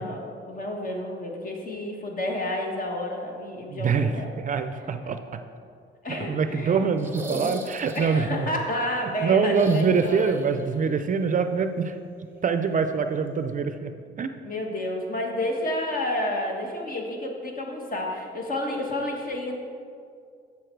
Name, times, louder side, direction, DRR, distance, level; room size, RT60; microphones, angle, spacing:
voice 1, 0.0-4.3 4.8-5.1 6.0-6.8 7.9-10.4 14.4-19.5, left 1 dB, 45° left, 1 dB, 1.5 m, -30 dB
voice 2, 3.7-5.4 6.1-8.5 9.2-11.9 12.4-13.9 14.2-14.3, right 5 dB, 40° right, 9 dB, 0.4 m, -24 dB
sound 1, 7.0-8.4 9.5-10.7 10.9-11.0 12.7-12.8, right 1 dB, 10° right, 0.9 m, -37 dB
7.1 x 6.4 x 4.5 m, 2.3 s
cardioid pair, 90°, 20 cm